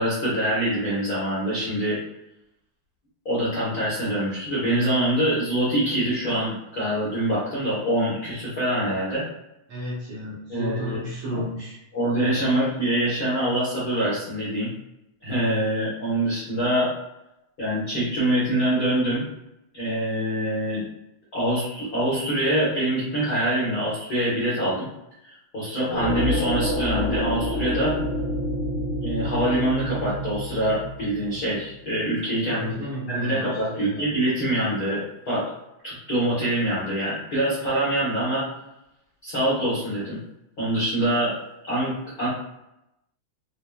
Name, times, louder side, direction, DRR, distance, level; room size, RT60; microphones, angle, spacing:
voice 1, 0.0-2.0 3.2-9.2 10.5-11.0 11.3-11.4 11.9-14.7 15.2-16.9 17.6-19.3 19.7-20.8 21.3-24.9 25.2-28.0 29.0-32.8 33.1-35.5 35.8-38.5 39.2-40.2 40.6-41.3 41.7-41.9 42.2-42.3, right 1 dB, 80° left, -10 dB, 0.8 m, -25 dB
voice 2, 9.7-11.8 32.5-34.0, equal, 70° right, -6 dB, 1.6 m, -33 dB
sound 1, 25.9-31.7, left 1 dB, 60° left, 1.3 m, -28 dB
6.0 x 2.0 x 2.3 m, 0.88 s
omnidirectional pair, 3.6 m